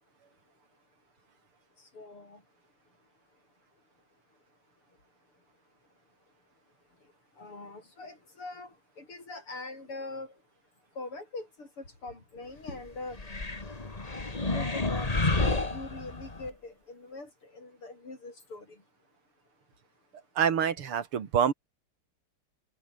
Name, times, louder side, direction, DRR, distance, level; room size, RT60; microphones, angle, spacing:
voice 1, 1.9-2.4 7.4-10.3 11.0-13.2 14.5-18.8, left 3 dB, 90° left, 8.2 m, -42 dB
sound 1, 13.1-16.5, left 2 dB, 20° left, 1.9 m, -30 dB
voice 2, 20.4-21.5, right 8 dB, 85° right, 2.8 m, -26 dB
omnidirectional pair, 2.4 m